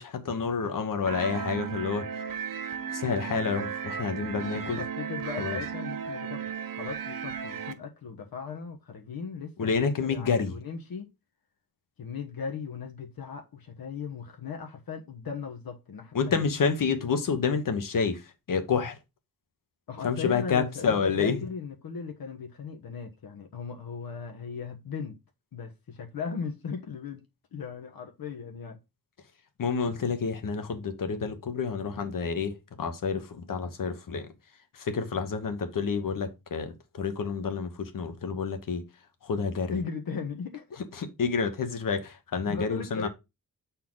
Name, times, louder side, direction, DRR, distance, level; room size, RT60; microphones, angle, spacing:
voice 1, 0.0-2.1 2.9-4.8 5.4-5.6 9.6-10.5 16.1-18.2 18.5-19.0 20.0-21.4 29.6-34.3 34.8-38.8 39.2-39.7 41.0-43.1, left 5 dB, 65° left, 1.2 m, -29 dB
sound 1, 1.1-7.7, right 7 dB, 70° right, 0.8 m, -35 dB
voice 2, 4.5-6.4 6.7-11.1 12.0-16.4 19.9-25.2 25.5-27.2 27.5-28.8 39.7-40.6 42.5-43.1, left 5 dB, 80° left, 1.2 m, -37 dB
7.3 x 4.3 x 3.9 m
wide cardioid pair, 145°, 35 cm